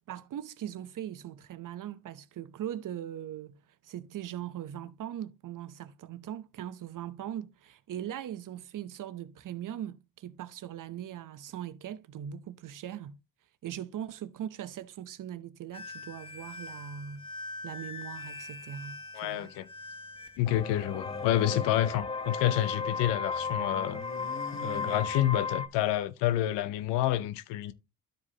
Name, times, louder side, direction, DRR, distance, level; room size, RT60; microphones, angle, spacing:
voice 1, 0.1-3.6 3.8-13.2 13.6-17.3 17.6-19.5 21.5-21.6, right 10 dB, 50° right, 0.8 m, -40 dB
sound 1, 15.7-25.7, left 4 dB, 15° left, 0.9 m, -37 dB
voice 2, 19.1-19.7 20.4-24.0 24.5-27.7, left 13 dB, 80° left, 0.8 m, -29 dB
sound 2, 20.4-22.8 23.1-25.6, left 2 dB, 30° left, 1.4 m, -46 dB
13.0 x 4.8 x 2.9 m
supercardioid pair, 70°, 42 cm